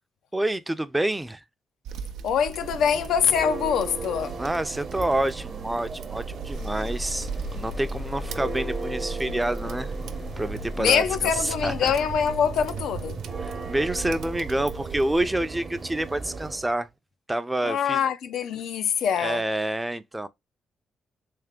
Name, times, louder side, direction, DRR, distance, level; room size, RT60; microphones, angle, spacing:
voice 1, 0.3-1.4 4.4-7.3 7.5-9.9 10.4-11.0 11.3-11.9 13.4-16.9 17.3-18.0 19.2-20.3, right 1 dB, 10° right, 0.5 m, -28 dB
sound 1, 1.9-15.3, right 7 dB, 90° right, 0.5 m, -40 dB
voice 2, 2.2-4.4 10.8-13.2 17.6-19.4, left 7 dB, 80° left, 0.5 m, -24 dB
Church bell, 2.4-16.7, right 4 dB, 45° right, 0.8 m, -37 dB
sound 2, 6.5-14.0, left 2 dB, 40° left, 0.7 m, -37 dB
3.4 x 3.2 x 3.6 m
cardioid pair, 90°, 0 cm